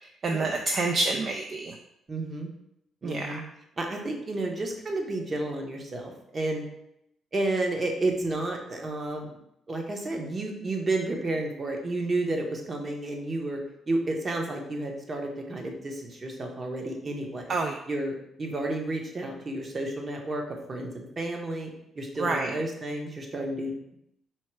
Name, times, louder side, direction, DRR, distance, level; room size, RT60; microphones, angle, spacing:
voice 1, 0.0-1.8 3.0-3.4 17.5-17.7 22.2-22.5, right 3 dB, 50° right, 3 dB, 0.3 m, -28 dB
voice 2, 2.1-2.5 3.0-3.4 3.8-6.7 7.3-9.3 9.7-13.6 13.9-17.6 17.9-20.4 20.7-24.0, right 2 dB, 35° right, 2 dB, 0.9 m, -31 dB
4.4 x 2.1 x 4.6 m, 0.78 s
cardioid pair, 90°, 0 cm